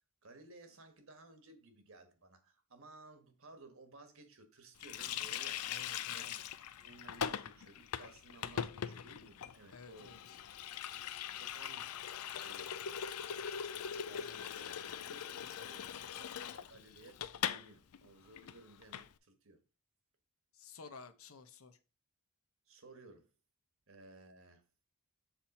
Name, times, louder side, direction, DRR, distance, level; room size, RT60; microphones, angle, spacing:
voice 1, 0.2-5.7 6.1-6.4 6.8-10.2 11.3-12.0 12.4-13.0 14.0-19.6 22.7-23.3 23.9-24.6, right 2 dB, 65° right, 1.5 m, -57 dB
Water tap faucet, 4.8-17.7 17.9-18.1 18.4-19.1, left 8 dB, 85° left, 0.5 m, -41 dB
voice 2, 5.7-6.4 9.7-10.4 14.2-14.6 20.5-21.8, left 4 dB, 70° left, 0.9 m, -54 dB
7.5 x 4.4 x 4.3 m
head